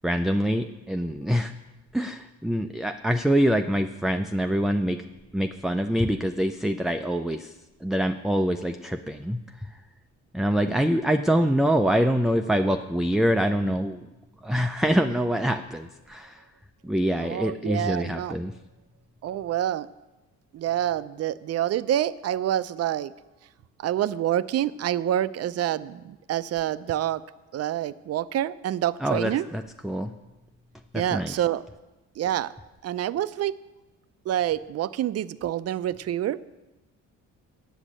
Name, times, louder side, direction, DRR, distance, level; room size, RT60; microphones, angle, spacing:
voice 1, 0.0-1.5 1.9-5.1 5.3-7.5 7.8-9.4 10.3-14.1 14.4-16.4 16.8-18.5 29.0-30.1 30.9-31.3, equal, ahead, 5 dB, 0.4 m, -25 dB
voice 2, 17.2-18.4 19.2-19.9 20.5-23.1 23.8-27.2 27.5-29.5 30.9-31.6 32.2-32.5 32.8-33.5 34.3-36.4, right 11 dB, 55° right, 16 dB, 0.5 m, -27 dB
8.2 x 7.3 x 8.7 m, 1.1 s
cardioid pair, 90°, 30 cm